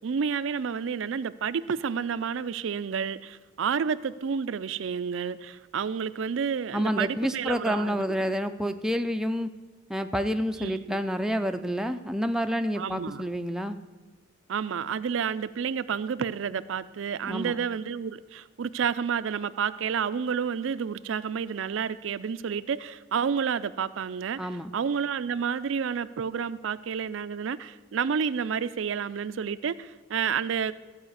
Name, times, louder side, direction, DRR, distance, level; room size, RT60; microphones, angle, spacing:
voice 1, 0.0-8.0 10.6-11.0 12.8-13.2 14.5-30.7, right 6 dB, 70° right, 14 dB, 0.4 m, -30 dB
voice 2, 6.7-9.5 9.9-13.8 17.3-17.6 24.4-24.7, equal, 5° right, 7 dB, 0.4 m, -28 dB
14.5 x 4.9 x 7.9 m, 1.3 s
head